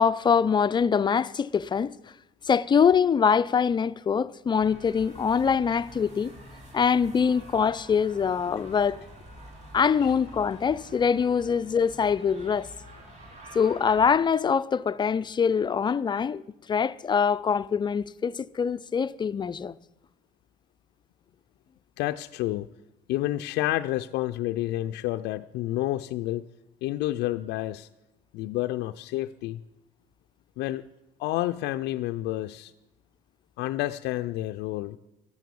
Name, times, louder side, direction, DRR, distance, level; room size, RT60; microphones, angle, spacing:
voice 1, 0.0-1.9 2.5-6.3 6.7-9.0 9.7-12.7 13.5-16.4 16.7-19.8, left 6 dB, 25° left, 0.4 m, -24 dB
sound 1, 4.6-14.2, right 1 dB, 45° right, 3.0 m, -47 dB
voice 2, 22.0-22.7 23.1-26.5 26.8-27.9 28.3-29.6 30.6-30.8 31.2-32.7 33.6-35.0, left 15 dB, 85° left, 0.4 m, -29 dB
13.5 x 9.3 x 7.0 m
cardioid pair, 110°, 17 cm